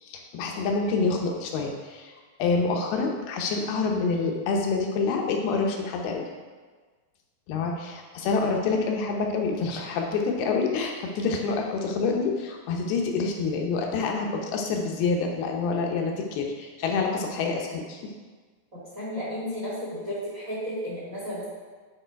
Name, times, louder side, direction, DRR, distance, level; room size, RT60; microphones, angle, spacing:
voice 1, 0.0-2.1 2.4-6.3 7.5-18.1, left 4 dB, 85° left, 1 dB, 2.7 m, -27 dB
voice 2, 18.9-21.4, equal, 25° right, -8 dB, 2.3 m, -33 dB
8.9 x 3.9 x 4.6 m, 1.4 s
omnidirectional pair, 4.4 m